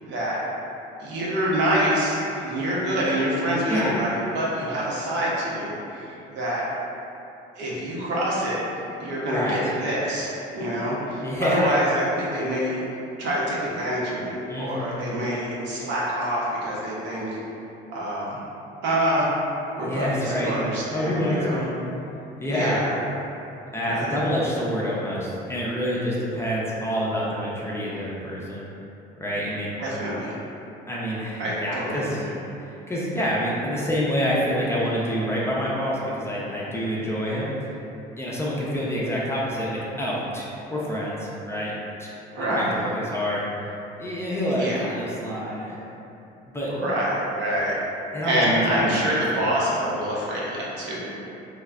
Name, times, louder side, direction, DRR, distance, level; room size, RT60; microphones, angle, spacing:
voice 1, 0.0-0.4 1.0-6.6 7.6-8.6 9.0-12.8 13.2-17.4 17.9-18.4 18.8-19.3 19.7-21.6 22.5-22.9 23.8-24.1 29.8-30.3 31.4-32.3 42.4-42.7 44.5-44.9 46.7-47.8 48.2-51.0, right 1 dB, 65° right, -6 dB, 0.7 m, -26 dB
voice 2, 11.2-11.7 14.5-14.9 19.8-20.6 20.9-21.8 22.4-22.8 23.7-28.7 29.2-29.7 30.9-32.2 32.7-37.8 38.2-41.7 42.0-42.1 42.3-43.7 44.0-45.8 46.5-46.7 48.1-49.5, equal, 15° left, -6 dB, 0.5 m, -27 dB
3.1 x 2.0 x 2.3 m, 2.8 s
supercardioid pair, 85°, 19 cm